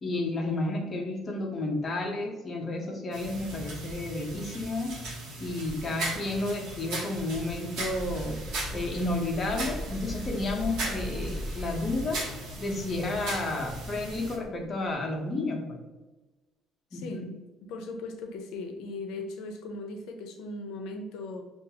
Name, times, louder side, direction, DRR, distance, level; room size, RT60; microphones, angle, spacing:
voice 1, 0.0-5.0 5.4-8.4 8.7-12.2 12.6-15.8 16.9-17.3, left 2 dB, 20° left, 1 dB, 0.5 m, -31 dB
sound 1, 3.1-14.4, right 2 dB, 65° right, 1.0 m, -38 dB
sound 2, 7.7-14.8, equal, 5° right, 0.9 m, -40 dB
voice 2, 16.9-17.3 17.7-21.4, left 2 dB, 70° left, 5 dB, 0.5 m, -38 dB
5.4 x 2.3 x 2.7 m, 1.2 s
cardioid pair, 170°, 0 cm